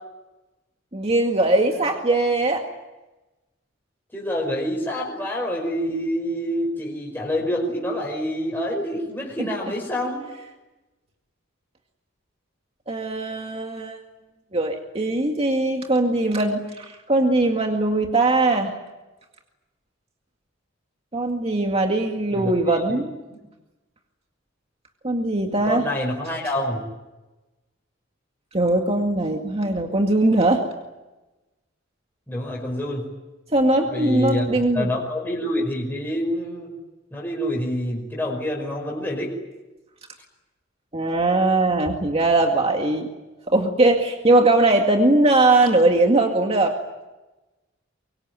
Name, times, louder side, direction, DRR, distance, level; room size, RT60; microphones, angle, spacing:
voice 1, 0.9-2.6 9.4-9.5 12.9-14.0 14.5-18.7 21.1-23.1 25.0-25.9 28.5-30.6 33.5-34.9 40.9-43.1 43.5-46.7, right 2 dB, 30° right, 2 dB, 2.1 m, -20 dB
voice 2, 4.1-10.3 22.3-23.1 25.7-26.8 32.3-33.0 33.9-34.5 34.7-36.7 37.1-39.3, equal, 10° left, -2 dB, 5.5 m, -27 dB
24.5 x 23.0 x 9.4 m, 1.1 s
head